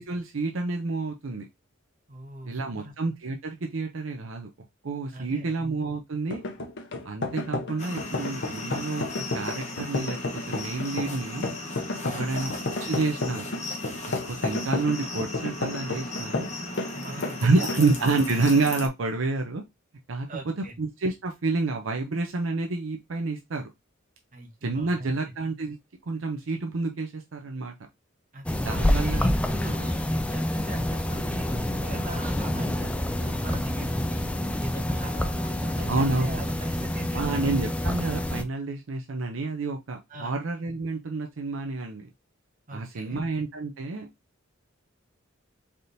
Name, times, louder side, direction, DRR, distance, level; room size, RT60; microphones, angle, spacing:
voice 1, 0.0-1.5 2.5-4.5 4.8-6.4 7.0-9.1 9.3-10.2 10.5-11.5 12.1-12.5 12.8-13.5 14.1-16.5 17.4-19.6 20.1-23.7 24.6-25.8 26.1-27.7 28.6-29.2 35.9-36.3 37.1-42.1 42.7-44.1, right 3 dB, 70° right, 0.6 m, -29 dB
voice 2, 2.1-2.9 5.1-5.5 12.1-12.3 16.9-18.0 20.3-20.7 24.3-25.1 28.3-28.6 28.9-34.3 34.6-37.4 40.1-40.4 42.7-43.2, right 2 dB, 40° right, 1.1 m, -41 dB
sound 1, 6.3-16.9 17.2-17.4 17.7-17.9, left 2 dB, 60° left, 0.8 m, -32 dB
sound 2, 7.8-18.9, left 2 dB, 35° left, 0.9 m, -36 dB
sound 3, 28.5-38.4, left 1 dB, 5° left, 0.3 m, -27 dB
4.2 x 3.4 x 2.6 m
head